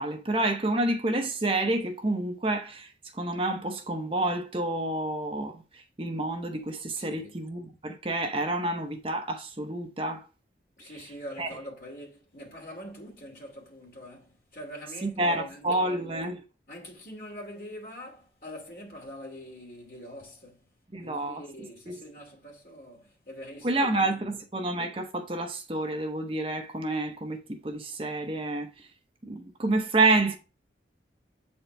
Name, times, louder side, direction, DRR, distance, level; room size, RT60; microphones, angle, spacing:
voice 1, 0.0-2.9 3.2-5.6 6.0-10.2 11.4-11.5 15.0-16.4 20.9-21.4 21.9-22.0 23.6-28.7 29.3-30.4, right 2 dB, 30° right, 0.7 m, -28 dB
voice 2, 7.0-7.4 10.8-16.4 16.7-20.7 21.0-24.4, equal, 50° left, 2.6 m, -44 dB
7.8 x 4.3 x 3.2 m
head